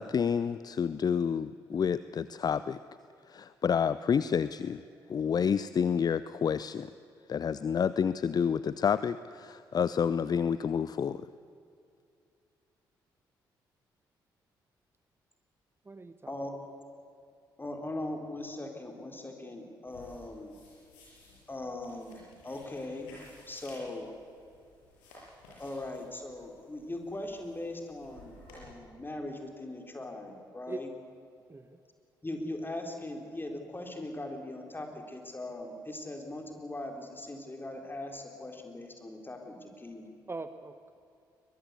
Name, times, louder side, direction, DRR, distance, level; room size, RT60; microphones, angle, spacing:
voice 1, 0.0-2.8 3.3-4.8 5.1-6.9 7.3-11.2, left 7 dB, 40° left, 15 dB, 0.6 m, -29 dB
voice 2, 15.8-16.3 30.7-30.8 31.5-31.8 40.3-41.0, right 3 dB, 20° right, 11 dB, 1.0 m, -41 dB
voice 3, 17.6-20.5 21.5-23.1 23.5-24.1 25.6-30.9 32.2-40.1, left 2 dB, 20° left, 3 dB, 4.1 m, -40 dB
sound 1, 19.9-28.6, left 2 dB, 70° left, 7.1 m, -56 dB
22.5 x 20.0 x 8.4 m, 2.5 s
figure-of-eight pair, 40°, 11 cm